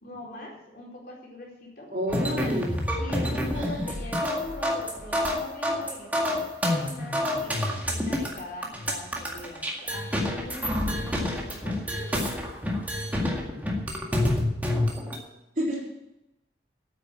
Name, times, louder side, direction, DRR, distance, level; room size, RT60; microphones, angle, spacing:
voice 1, 0.0-1.9 3.0-12.2, left 1 dB, 55° left, -3 dB, 4.3 m, -41 dB
voice 2, 1.9-2.8 3.6-3.8 15.6-15.9, equal, 45° right, -4 dB, 4.1 m, -29 dB
sound 1, 2.1-15.2, left 1 dB, 10° right, 1.9 m, -28 dB
9.6 x 8.9 x 7.7 m, 0.91 s
head